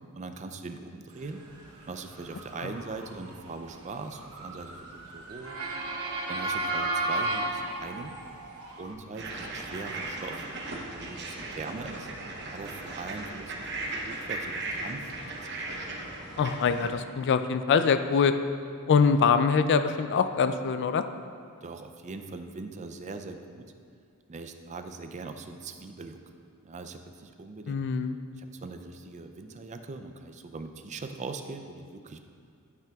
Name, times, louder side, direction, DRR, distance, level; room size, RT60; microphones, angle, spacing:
voice 1, 0.1-1.4 1.9-5.5 6.3-8.2 8.8-10.4 11.0-12.1 12.5-15.2 15.5-15.6 21.6-23.7 24.3-26.2 26.6-27.8 28.4-32.2, right 3 dB, 30° right, 7 dB, 0.4 m, -41 dB
Motor vehicle (road) / Siren, 1.6-8.9, right 2 dB, 75° right, 1.0 m, -34 dB
sound 1, 9.1-16.9, right 2 dB, 50° right, 0.9 m, -37 dB
voice 2, 16.4-18.3 18.9-21.0 27.7-28.2, left 5 dB, 55° left, 10 dB, 0.3 m, -24 dB
11.5 x 5.8 x 2.4 m, 2.3 s
head